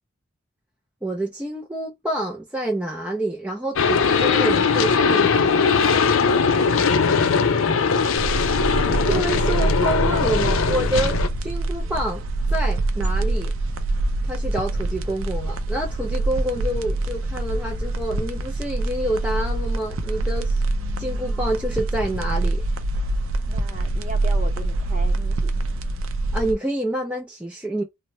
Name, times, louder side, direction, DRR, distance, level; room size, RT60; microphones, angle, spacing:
voice 1, 1.0-5.7 6.4-6.8 9.1-12.2 12.5-13.5 14.3-20.6 21.0-22.6 26.3-27.8, right 1 dB, 5° right, 0.4 m, -27 dB
sound 1, 3.8-11.3, left 5 dB, 65° left, 0.5 m, -20 dB
sound 2, 8.2-26.5, right 2 dB, 65° right, 0.5 m, -25 dB
voice 2, 8.8-9.2 10.1-10.2 23.5-25.5, right 1 dB, 35° right, 0.8 m, -36 dB
3.0 x 2.1 x 3.0 m
head